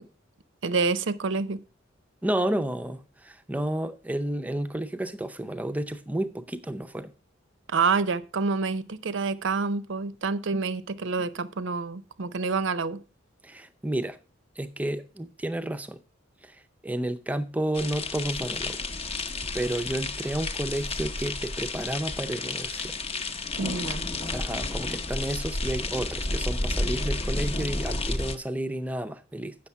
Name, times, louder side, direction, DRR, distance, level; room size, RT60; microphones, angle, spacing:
voice 1, 0.6-1.6 7.7-13.0 23.6-24.0, right 4 dB, 65° right, 0.6 m, -27 dB
voice 2, 2.2-7.1 13.4-14.2 14.6-16.0 16.4-18.8 19.5-23.0 24.3-29.6, right 1 dB, 5° right, 0.5 m, -31 dB
sound 1, 17.7-28.4, left 2 dB, 30° left, 0.7 m, -31 dB
8.3 x 6.4 x 5.5 m
head